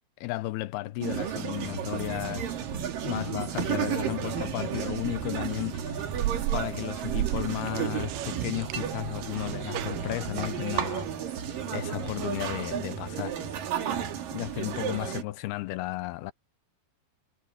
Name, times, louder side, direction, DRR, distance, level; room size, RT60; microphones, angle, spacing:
voice 1, 0.2-2.6 3.0-6.1 6.5-11.4 11.7-13.6 14.3-16.3, left 18 dB, 75° left, 2.6 m, -34 dB
sound 1, 1.0-15.2, right 9 dB, 60° right, 3.6 m, -33 dB
sound 2, 1.6-12.4, right 2 dB, 25° right, 5.3 m, -44 dB
sound 3, 2.0-10.3, right 16 dB, 90° right, 2.9 m, -37 dB
omnidirectional pair, 4.8 m